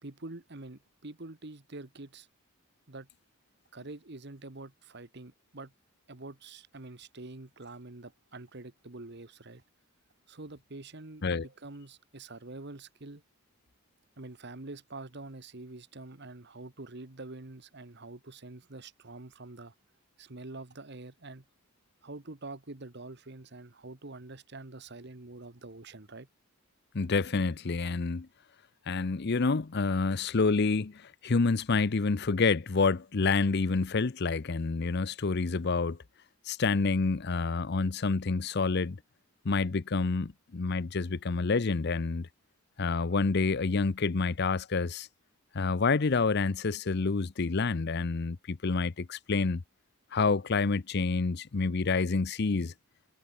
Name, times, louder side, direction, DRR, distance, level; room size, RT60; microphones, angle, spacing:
voice 1, 0.0-2.3 2.9-3.1 3.7-5.7 6.1-9.6 10.3-13.2 14.2-19.7 20.2-21.4 22.0-26.3, right 2 dB, 55° right, 1.5 m, -46 dB
voice 2, 26.9-28.3 28.9-36.0 36.5-39.0 39.4-42.3 42.8-45.1 45.5-49.6 50.1-52.7, left 4 dB, 50° left, 0.6 m, -28 dB
head